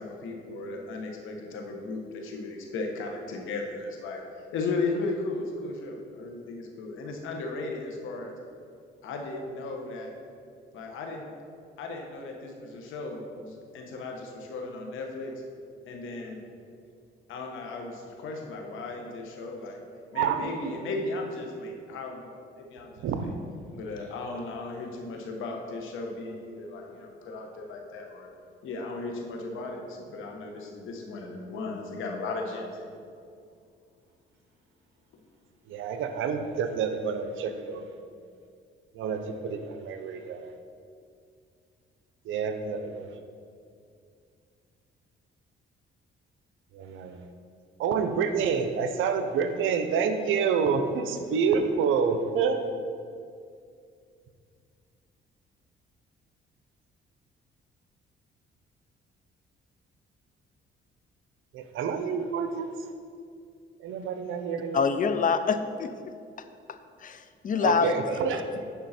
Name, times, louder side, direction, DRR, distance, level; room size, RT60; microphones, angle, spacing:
voice 1, 0.0-4.2 4.5-8.3 9.0-10.1 10.7-11.2 11.8-15.4 15.9-16.4 17.3-19.8 20.1-23.1 23.7-28.3 28.6-32.9, left 3 dB, 85° left, 2 dB, 1.2 m, -36 dB
voice 2, 20.1-20.8 23.0-23.3 35.7-37.9 38.9-40.5 42.2-43.1 46.7-47.2 47.8-52.6 61.5-62.7 63.8-64.8 67.6-68.6, right 6 dB, 85° right, 8 dB, 0.7 m, -28 dB
voice 3, 64.7-68.4, left 5 dB, 45° left, 10 dB, 0.6 m, -27 dB
9.3 x 5.5 x 4.3 m, 2.4 s
cardioid pair, 90°, 20 cm